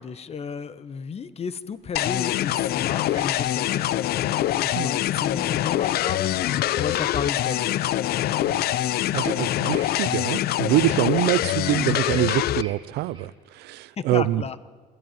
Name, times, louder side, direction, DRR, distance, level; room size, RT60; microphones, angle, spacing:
voice 1, 0.0-6.4 6.7-8.0 14.0-14.6, left 6 dB, 40° left, 1.3 m, -33 dB
sound 1, 1.2-1.3 1.7-13.3, right 4 dB, 30° right, 4.3 m, -51 dB
sound 2, 2.0-12.6, left 13 dB, 65° left, 0.6 m, -24 dB
voice 2, 9.1-14.4, right 16 dB, 80° right, 0.6 m, -25 dB
27.0 x 15.0 x 9.3 m
cardioid pair, 110°, 17 cm